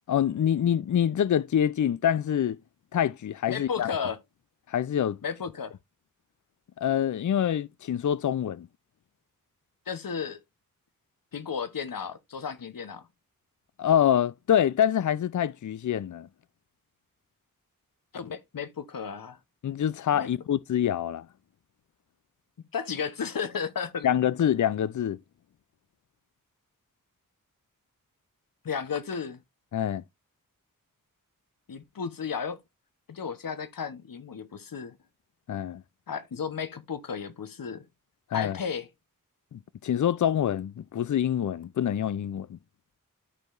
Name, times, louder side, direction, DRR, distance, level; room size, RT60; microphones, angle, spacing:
voice 1, 0.1-2.6 2.9-3.9 4.7-5.2 6.8-8.7 13.8-16.3 19.6-21.3 24.0-25.2 29.7-30.0 35.5-35.8 38.3-38.6 39.5-42.6, left 10 dB, 60° left, 0.5 m, -26 dB
voice 2, 3.5-4.2 5.2-5.7 9.9-10.4 11.3-13.1 18.1-19.4 20.1-20.3 22.7-24.1 28.6-29.4 31.7-32.6 33.1-35.0 36.1-37.9 38.3-38.9, left 6 dB, 75° left, 1.0 m, -34 dB
13.5 x 4.6 x 2.5 m
cardioid pair, 45°, 34 cm